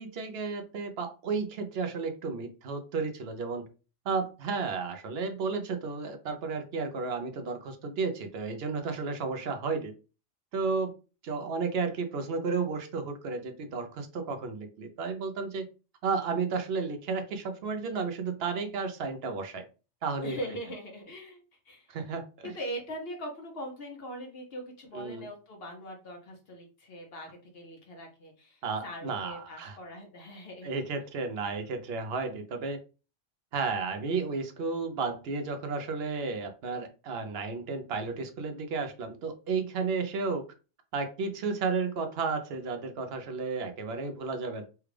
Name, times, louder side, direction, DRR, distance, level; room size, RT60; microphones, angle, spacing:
voice 1, 0.0-3.7 4.0-9.9 10.5-10.9 11.2-15.7 16.0-19.7 20.0-20.4 21.9-22.5 24.9-25.3 28.6-29.8 30.6-32.8 33.5-40.5 40.9-44.6, right 4 dB, 60° right, 0.9 m, -33 dB
voice 2, 20.2-21.4 21.7-22.0 22.4-30.7, equal, 55° left, 1.0 m, -41 dB
3.4 x 2.3 x 3.2 m
omnidirectional pair, 1.2 m